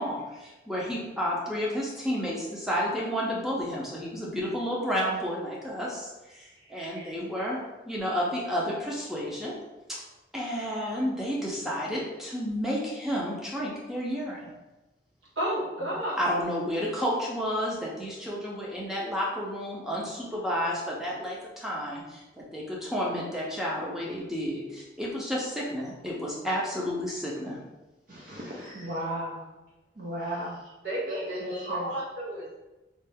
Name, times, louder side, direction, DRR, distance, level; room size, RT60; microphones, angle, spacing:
voice 1, 0.0-7.6 7.9-9.5 10.3-14.5 16.2-27.6, equal, 5° right, -5 dB, 0.6 m, -31 dB
voice 2, 15.4-16.2 30.8-32.6, right 1 dB, 75° right, -6 dB, 1.2 m, -32 dB
voice 3, 28.1-29.4 30.0-30.6 31.1-32.0, equal, 50° right, -5 dB, 0.6 m, -35 dB
3.2 x 2.5 x 3.5 m, 1.1 s
head